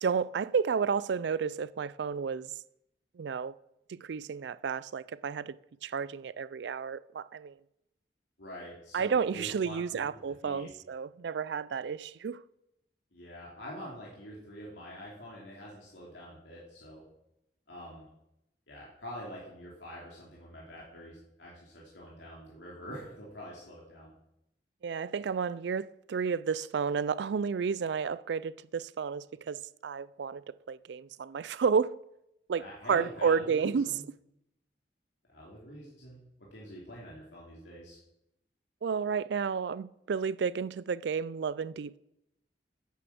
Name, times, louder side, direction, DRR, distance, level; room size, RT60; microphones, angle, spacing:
voice 1, 0.0-2.5 3.2-3.6 3.9-5.6 5.8-7.5 8.9-12.4 24.8-30.4 30.7-32.0 32.5-34.0 38.8-42.0, right 6 dB, 75° right, 0.4 m, -31 dB
voice 2, 8.4-10.7 13.1-17.0 17.7-18.1 18.7-24.1 32.6-34.0 35.3-38.0, equal, 85° left, 2.9 m, -46 dB
9.3 x 7.8 x 6.9 m
head